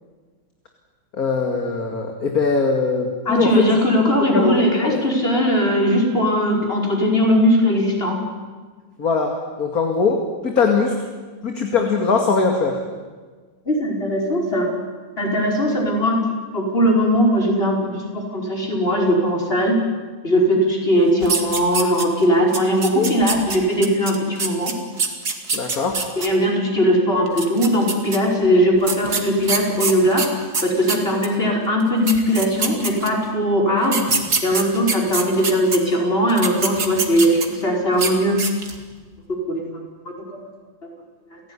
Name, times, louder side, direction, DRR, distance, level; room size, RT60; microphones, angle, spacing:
voice 1, 1.1-3.8 4.3-5.1 9.0-10.9 11.4-12.8 22.9-23.1 25.5-26.0, left 4 dB, 50° left, 3 dB, 2.7 m, -21 dB
voice 2, 3.3-8.2 13.7-14.7 15.2-16.2 16.5-19.8 20.2-24.7 26.2-34.0 34.4-38.4 39.3-39.8 40.3-40.4 41.3-41.4, equal, 30° left, 0 dB, 5.7 m, -19 dB
sound 1, 21.2-22.2 22.5-26.3 27.3-28.2 28.9-31.3 31.8-31.9 32.1-33.3 33.8-35.8 36.3-37.6 37.9-38.1 38.4-38.8, right 4 dB, 55° right, 2.9 m, -24 dB
29.0 x 17.0 x 9.9 m, 1.4 s
omnidirectional pair, 2.1 m